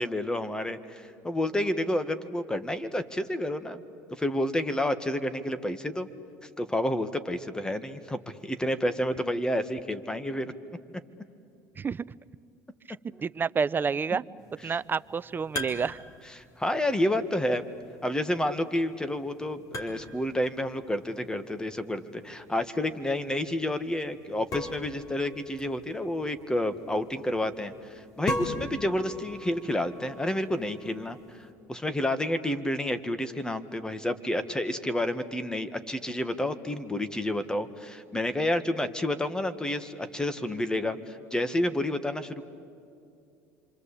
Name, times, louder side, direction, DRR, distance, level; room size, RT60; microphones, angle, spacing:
voice 1, 0.0-3.8 4.2-6.1 6.6-10.5 14.1-14.2 14.7-14.8 16.4-17.6 18.0-31.4 31.7-42.4, left 1 dB, 10° left, 11 dB, 1.7 m, -30 dB
voice 2, 13.2-14.2 14.6-16.0, right 5 dB, 25° right, 17 dB, 0.6 m, -29 dB
sound 1, 14.4-31.5, left 1 dB, 45° left, 4.3 m, -42 dB
27.0 x 25.5 x 8.5 m, 2.5 s
supercardioid pair, 90°, 8 cm